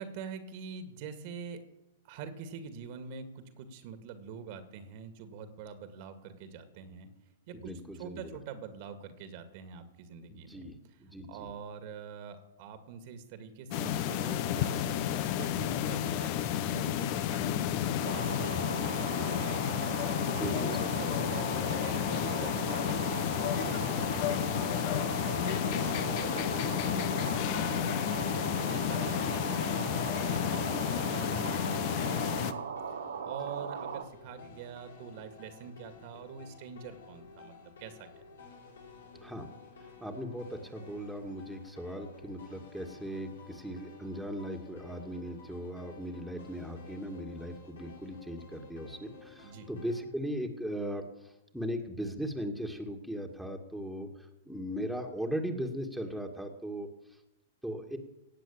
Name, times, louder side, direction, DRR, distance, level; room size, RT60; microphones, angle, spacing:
voice 1, 0.0-1.6 2.0-7.1 7.5-11.0 11.3-19.6 20.4-32.6 33.2-38.1 49.4-49.7, right 6 dB, 50° right, 9 dB, 2.2 m, -45 dB
voice 2, 7.5-8.4 10.3-10.7 11.0-11.5 20.2-21.2 39.2-39.5 40.0-51.1 51.5-54.1 54.5-56.9 57.6-58.0, equal, ahead, 2 dB, 2.1 m, -38 dB
sound 1, 13.7-32.5, left 10 dB, 45° left, 1.1 m, -31 dB
sound 2, 18.0-34.0, right 6 dB, 75° right, 1.5 m, -39 dB
sound 3, 30.5-50.0, left 4 dB, 75° left, 5.2 m, -53 dB
17.5 x 7.7 x 8.6 m, 0.92 s
hypercardioid pair, 110°, 0 cm